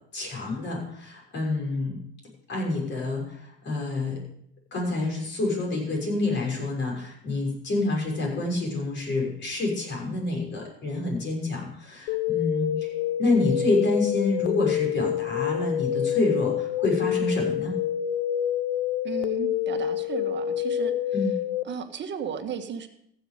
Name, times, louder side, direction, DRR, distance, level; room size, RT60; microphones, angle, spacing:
voice 1, 0.1-2.0 2.5-4.2 4.7-12.9 13.2-17.7 21.1-21.3, left 2 dB, 40° left, -1 dB, 6.3 m, -27 dB
sound 1, 12.1-21.6, left 10 dB, 70° left, 1.0 m, -27 dB
voice 2, 19.0-21.4 21.6-22.9, right 7 dB, 40° right, 7 dB, 1.6 m, -35 dB
15.5 x 7.3 x 5.1 m, 0.70 s
hypercardioid pair, 80°, 29 cm